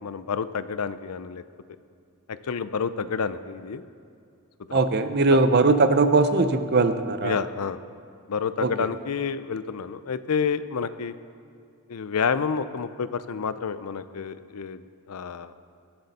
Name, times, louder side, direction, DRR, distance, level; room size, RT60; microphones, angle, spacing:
voice 1, 0.0-1.4 2.3-3.8 4.7-4.8 5.3-5.4 7.2-7.8 8.3-11.1 11.9-15.5, left 6 dB, 85° left, 13 dB, 0.5 m, -29 dB
voice 2, 4.7-7.4 8.6-8.9, right 3 dB, 45° right, 10 dB, 0.6 m, -20 dB
21.5 x 7.8 x 4.2 m, 2.4 s
head